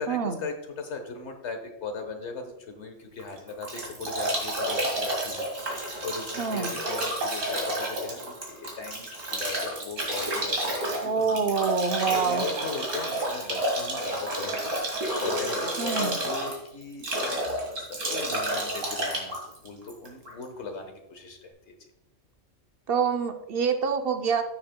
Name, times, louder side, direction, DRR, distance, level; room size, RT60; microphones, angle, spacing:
voice 1, 0.0-19.4 19.6-21.8, left 4 dB, 65° left, 5 dB, 1.5 m, -39 dB
Bathtub (filling or washing) / Drip / Trickle dribble, 3.2-20.4, right 1 dB, 80° right, 2.2 m, -30 dB
voice 2, 6.4-6.7 11.0-12.4 15.8-16.2 22.9-24.4, right 5 dB, 60° right, 7 dB, 0.7 m, -26 dB
14.0 x 6.5 x 2.2 m, 0.89 s
omnidirectional pair, 1.3 m